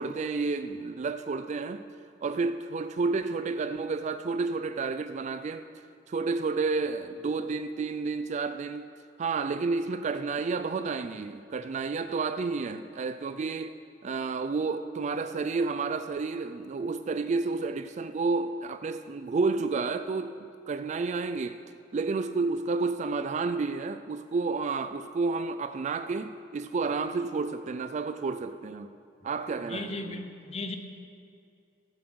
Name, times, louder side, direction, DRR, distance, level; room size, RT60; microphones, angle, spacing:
voice 1, 0.0-1.8 2.2-5.7 6.1-8.9 9.2-13.7 14.0-20.4 20.7-21.6 21.9-28.9 29.2-30.3, right 4 dB, 40° right, 0.3 m, -30 dB
voice 2, 29.7-30.8, left 3 dB, 35° left, 0.9 m, -36 dB
14.5 x 7.4 x 6.2 m
head